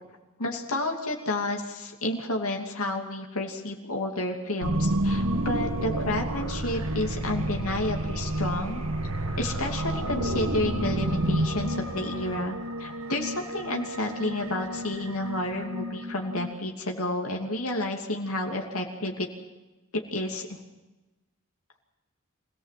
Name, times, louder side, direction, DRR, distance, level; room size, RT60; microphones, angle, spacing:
voice 1, 0.4-8.8 9.4-19.3 19.9-20.6, left 1 dB, 90° left, 1 dB, 2.8 m, -31 dB
sound 1, 4.6-16.5, right 1 dB, 85° right, 1.7 m, -30 dB
sound 2, 5.3-12.4, left 1 dB, 70° left, 3.8 m, -45 dB
25.5 x 18.0 x 7.7 m, 1.1 s
head